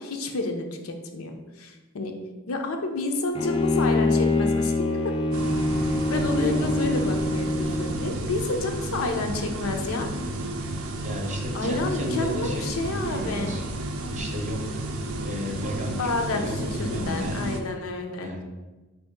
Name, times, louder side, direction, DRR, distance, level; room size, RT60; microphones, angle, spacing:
voice 1, 0.0-2.1 2.5-5.1 6.1-10.1 11.5-13.5 16.0-18.3, left 2 dB, 75° left, 4 dB, 0.5 m, -30 dB
Bowed string instrument, 3.4-8.1, left 2 dB, 25° left, 0.4 m, -24 dB
sound 1, 5.3-17.6, right 1 dB, 75° right, 0.5 m, -32 dB
voice 2, 11.0-13.6 14.1-14.7 15.2-17.4 18.2-18.4, equal, 35° right, 1 dB, 0.7 m, -33 dB
4.5 x 2.7 x 3.5 m, 1.2 s
head